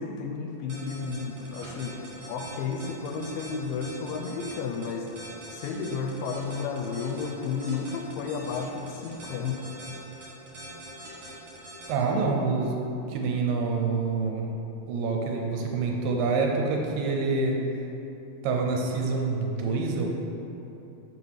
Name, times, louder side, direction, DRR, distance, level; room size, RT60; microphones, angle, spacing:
voice 1, 0.0-5.1 5.5-9.8, left 5 dB, 80° left, 3 dB, 2.1 m, -32 dB
sound 1, 0.7-11.9, right 1 dB, 50° right, 2.0 m, -43 dB
voice 2, 11.9-12.8 13.1-14.6 14.9-17.6 18.4-20.1, right 4 dB, 80° right, 1 dB, 2.2 m, -26 dB
5.4 x 4.8 x 5.7 m, 2.9 s
omnidirectional pair, 4.2 m